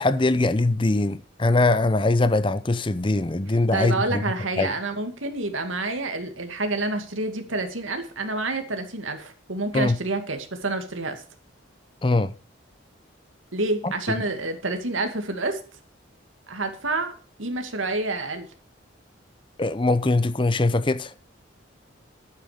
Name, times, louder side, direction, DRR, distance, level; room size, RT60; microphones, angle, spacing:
voice 1, 0.0-4.2 4.6-4.7 9.7-10.0 12.0-12.3 13.8-13.9 19.6-21.1, left 2 dB, 25° left, 0.6 m, -22 dB
voice 2, 3.5-11.2 13.5-15.6 16.5-17.1 17.4-18.5, right 2 dB, 85° right, 2.3 m, -28 dB
11.5 x 9.1 x 5.1 m
head